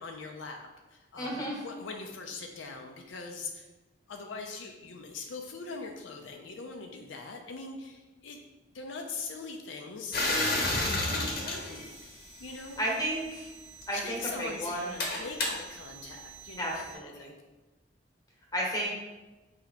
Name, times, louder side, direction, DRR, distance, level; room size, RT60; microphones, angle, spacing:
voice 1, 0.0-3.7 4.1-8.4 8.7-13.0 13.9-17.4, left 4 dB, 80° left, 3 dB, 0.5 m, -42 dB
voice 2, 1.2-1.6 12.8-13.5 13.9-14.9 16.6-17.3 18.5-18.9, right 1 dB, 20° left, -3 dB, 1.1 m, -33 dB
sound 1, 10.1-12.8 13.7-16.9, left 2 dB, 50° left, 0.9 m, -33 dB
4.3 x 2.8 x 4.1 m, 1.1 s
head